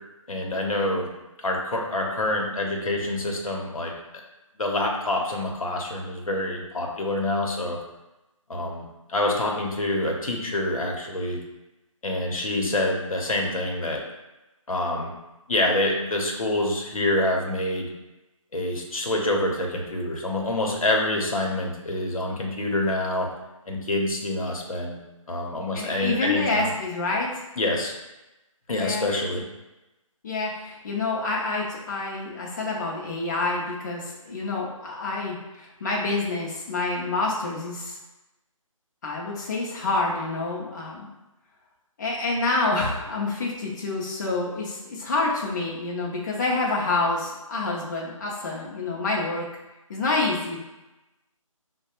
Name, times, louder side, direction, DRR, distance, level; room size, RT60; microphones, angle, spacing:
voice 1, 0.3-1.1 1.4-3.9 4.6-7.8 8.5-11.4 12.0-14.0 14.7-15.1 15.5-17.9 18.5-23.3 23.7-25.0 25.3-26.7 27.6-27.9 28.7-29.4, left 1 dB, 80° left, 0 dB, 0.9 m, -26 dB
voice 2, 25.7-27.4 28.7-29.1 30.2-38.0 39.0-41.1 42.0-49.4 49.9-50.6, left 3 dB, 35° left, -4 dB, 0.6 m, -27 dB
4.6 x 2.2 x 2.9 m, 1.0 s
figure-of-eight pair, 155°, 18 cm